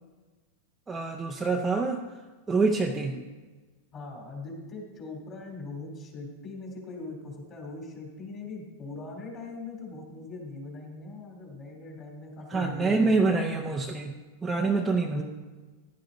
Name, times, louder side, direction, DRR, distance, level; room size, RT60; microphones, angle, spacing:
voice 1, 0.9-2.0 2.5-3.2 12.5-15.2, right 3 dB, 10° right, 2 dB, 0.6 m, -26 dB
voice 2, 3.9-13.7 15.1-15.2, left 3 dB, 25° left, 1 dB, 2.7 m, -41 dB
15.0 x 10.5 x 3.9 m, 1.3 s
supercardioid pair, 170°, 0 cm